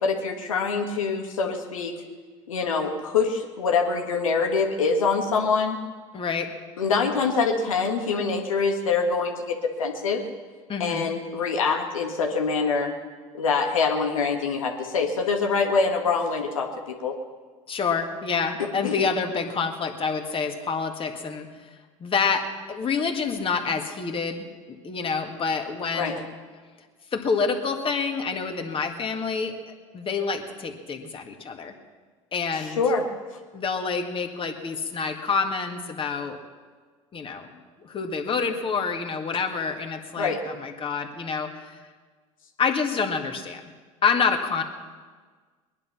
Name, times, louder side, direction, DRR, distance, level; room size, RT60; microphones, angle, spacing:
voice 1, 0.0-1.9 2.5-5.8 6.8-10.2 10.8-12.9 13.3-17.1 18.8-18.9 25.9-26.1 32.5-33.0 40.2-40.4, left 4 dB, 85° left, 3 dB, 1.8 m, -25 dB
voice 2, 6.1-6.5 10.7-11.1 17.7-21.5 22.0-26.2 27.1-31.7 32.3-32.8 33.5-36.4 37.1-37.5 37.8-41.8 42.6-43.6 44.0-44.6, left 5 dB, 30° left, 4 dB, 2.0 m, -27 dB
20.5 x 11.0 x 5.7 m, 1.5 s
hypercardioid pair, 80°, 17 cm